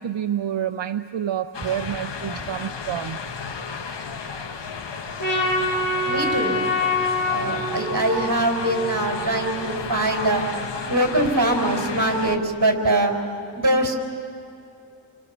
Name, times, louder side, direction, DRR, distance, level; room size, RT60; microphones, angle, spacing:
voice 1, 0.0-3.2, right 10 dB, 75° right, 7 dB, 0.7 m, -28 dB
sound 1, 1.5-12.4, left 5 dB, 65° left, 1.6 m, -33 dB
Trumpet, 5.2-9.6, left 2 dB, 45° left, 7.4 m, -26 dB
voice 2, 6.1-6.7 7.3-10.4 10.9-13.1 13.5-13.9, right 1 dB, 40° right, 3 dB, 4.6 m, -22 dB
29.5 x 26.0 x 7.1 m, 2.7 s
wide cardioid pair, 90°, 45 cm